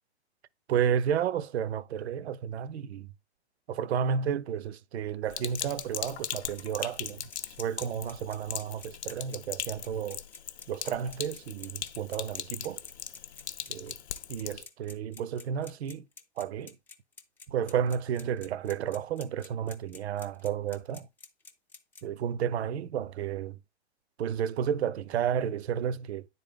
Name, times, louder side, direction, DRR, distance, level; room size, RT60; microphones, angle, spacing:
voice 1, 0.7-3.1 3.7-10.2 10.7-12.8 13.7-13.9 14.3-16.1 16.4-16.8 17.5-21.1 22.0-23.6 24.2-26.3, right 8 dB, 70° right, 0.5 m, -32 dB
Sink (filling or washing), 5.3-14.6, left 9 dB, 70° left, 0.7 m, -39 dB
sound 1, 5.3-22.0, left 5 dB, 5° left, 0.3 m, -50 dB
9.7 x 3.9 x 3.7 m
figure-of-eight pair, 105°, 34 cm